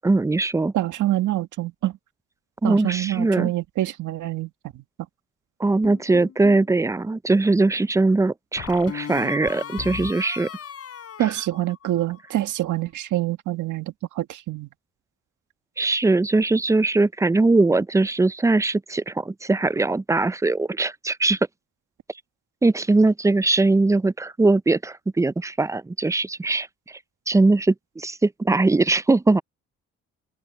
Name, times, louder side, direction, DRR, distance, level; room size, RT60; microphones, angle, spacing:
voice 1, 0.0-0.7 2.6-3.5 5.6-10.5 11.2-11.3 15.8-21.4 22.6-27.0 27.3-29.4, right 3 dB, 10° right, 0.4 m, -21 dB
voice 2, 0.7-2.0 2.6-4.8 11.2-14.7, right 14 dB, 80° right, 1.9 m, -26 dB
sound 1, 5.8-6.7 8.6-12.2, left 8 dB, 55° left, 3.8 m, -37 dB
open air
cardioid pair, 90°, 30 cm